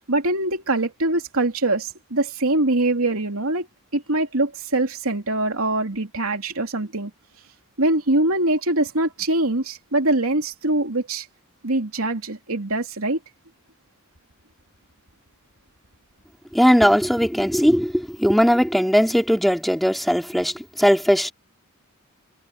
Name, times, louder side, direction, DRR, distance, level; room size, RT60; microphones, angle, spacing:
voice 1, 0.1-3.7 3.9-7.1 7.8-11.3 11.6-13.2, right 2 dB, 80° right, 3.1 m, -23 dB
voice 2, 16.5-21.3, equal, ahead, 3.2 m, -19 dB
head